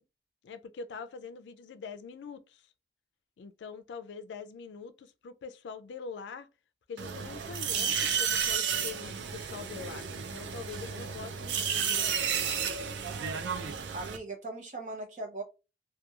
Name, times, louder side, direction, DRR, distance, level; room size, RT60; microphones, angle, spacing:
voice 1, 0.4-2.7 3.4-6.5 6.9-12.7, left 5 dB, 85° left, 0.3 m, -44 dB
sound 1, 7.0-14.2, right 7 dB, 90° right, 0.4 m, -32 dB
voice 2, 13.0-13.5 13.9-15.4, right 2 dB, 45° right, 0.7 m, -39 dB
2.9 x 2.2 x 2.3 m
head